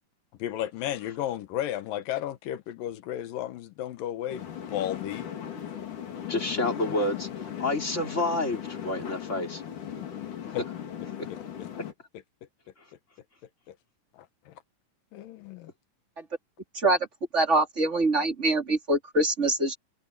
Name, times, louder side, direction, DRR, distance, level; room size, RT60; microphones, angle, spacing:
voice 1, 0.4-5.3 10.5-10.6 11.3-11.4 14.5-14.6 15.1-15.7, left 12 dB, 90° left, 2.9 m, -33 dB
sound 1, 4.3-11.9, left 9 dB, 70° left, 4.2 m, -37 dB
voice 2, 6.3-9.6 10.4-10.5, left 2 dB, 20° left, 3.7 m, -29 dB
voice 3, 17.3-19.8, right 2 dB, 20° right, 2.7 m, -24 dB
omnidirectional pair, 3.8 m